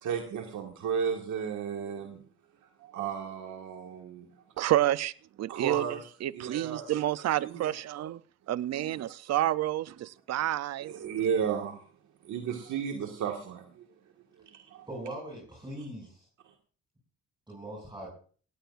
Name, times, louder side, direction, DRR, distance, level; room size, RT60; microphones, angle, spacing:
voice 1, 0.0-2.2 2.8-4.3 5.5-6.0 6.3-6.8 7.4-7.7 8.7-8.9 10.9-11.8 12.2-13.8 14.5-14.9, right 7 dB, 75° right, 3 dB, 1.8 m, -33 dB
voice 2, 4.6-5.1 5.4-8.2 8.5-10.9, right 13 dB, 60° right, 17 dB, 0.6 m, -29 dB
voice 3, 14.9-16.3 17.5-18.1, right 1 dB, 15° right, -4 dB, 6.5 m, -41 dB
17.5 x 17.0 x 2.5 m, 0.42 s
cardioid pair, 90°, 30 cm